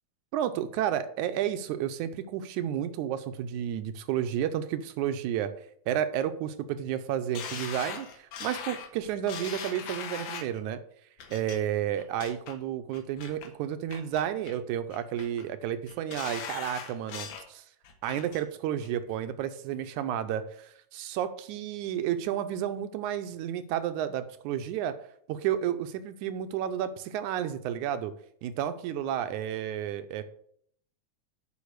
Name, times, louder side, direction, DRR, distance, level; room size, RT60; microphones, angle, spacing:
voice 1, 0.3-5.5 5.9-10.8 11.3-17.6 18.0-24.9 25.3-28.1 28.4-30.2, right 10 dB, 80° right, 11 dB, 2.2 m, -31 dB
sound 1, 7.4-10.6 11.2-11.6 12.0-12.5 12.9-13.5 13.9-14.6 14.9-15.4 15.9-17.5 17.8-18.4 18.8-18.9, left 7 dB, 85° left, 2.6 m, -40 dB
8.5 x 5.4 x 6.6 m, 0.65 s
omnidirectional pair, 3.4 m